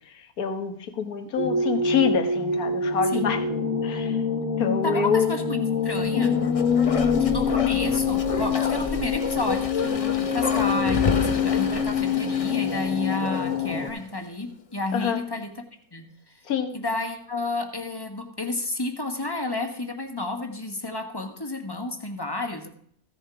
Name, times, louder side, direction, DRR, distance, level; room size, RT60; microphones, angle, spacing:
voice 1, 0.1-3.4 3.8-4.2 4.6-5.4 6.8-7.1 7.5-7.7 14.9-15.2 16.5-16.7, left 7 dB, 80° left, 7 dB, 1.7 m, -26 dB
sound 1, 1.4-13.9, left 5 dB, 65° left, 1.9 m, -25 dB
voice 2, 4.8-6.4 7.2-15.5 15.9-16.4 16.7-22.7, left 2 dB, 15° left, 4 dB, 1.3 m, -31 dB
Bark, 6.2-13.7 14.1-14.2, left 4 dB, 45° left, 0.4 m, -31 dB
15.5 x 7.2 x 4.8 m, 0.63 s
omnidirectional pair, 1.5 m